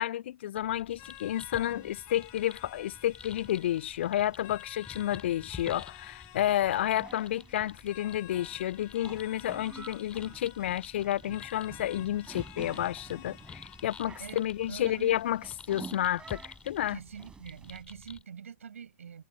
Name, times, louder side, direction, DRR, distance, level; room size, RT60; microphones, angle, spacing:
voice 1, 0.0-15.4 15.7-17.0, left 12 dB, 50° left, 0.3 m, -31 dB
sound 1, 0.5-18.2, left 6 dB, 15° left, 4.3 m, -50 dB
sound 2, 0.9-17.8, right 5 dB, 10° right, 4.4 m, -52 dB
sound 3, 1.0-16.0, left 26 dB, 35° left, 6.3 m, -52 dB
voice 2, 14.2-15.2 16.9-19.2, right 7 dB, 65° right, 7.9 m, -45 dB
figure-of-eight pair, 110°, 8 cm